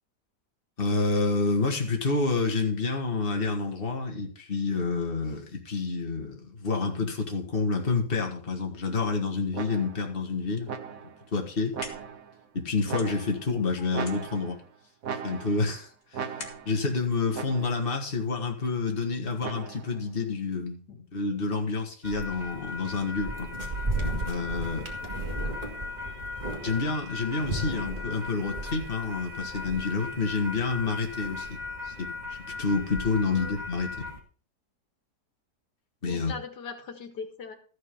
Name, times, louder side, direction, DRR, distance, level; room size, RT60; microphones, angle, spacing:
voice 1, 0.8-10.7 11.3-11.8 12.5-14.6 15.2-16.3 16.7-20.8 21.1-23.5 24.3-24.9 26.6-31.6 31.8-34.1 36.0-36.3, left 4 dB, 35° left, 2 dB, 2.0 m, -28 dB
sound 1, 9.5-10.1 10.7-11.3 11.7-12.4 12.9-13.5 13.9-14.7 15.0-15.8 16.1-16.8 17.3-17.9 19.4-20.0, right 7 dB, 60° right, 1.5 m, -38 dB
sound 2, 11.4-18.2, left 3 dB, 60° left, 2.4 m, -48 dB
voice 2, 13.8-14.2 20.9-21.0 24.9-25.5 33.3-33.6 36.1-37.6, left 5 dB, 85° left, 7 dB, 2.3 m, -41 dB
sound 3, 22.0-34.2, left 1 dB, 25° right, 2.4 m, -35 dB
13.5 x 6.6 x 5.5 m, 0.40 s
omnidirectional pair, 1.7 m